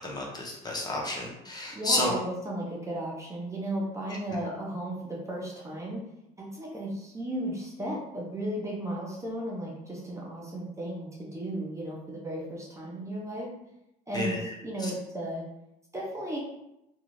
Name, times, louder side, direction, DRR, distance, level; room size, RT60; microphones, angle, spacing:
voice 1, 0.0-2.1 14.1-14.5 14.8-14.9, left 2 dB, 20° left, -2 dB, 0.7 m, -31 dB
voice 2, 1.7-6.0 6.4-13.5 14.1-15.4 15.9-16.4, right 1 dB, 15° right, -3 dB, 0.6 m, -35 dB
2.5 x 2.4 x 3.1 m, 0.86 s
supercardioid pair, 100°, 18 cm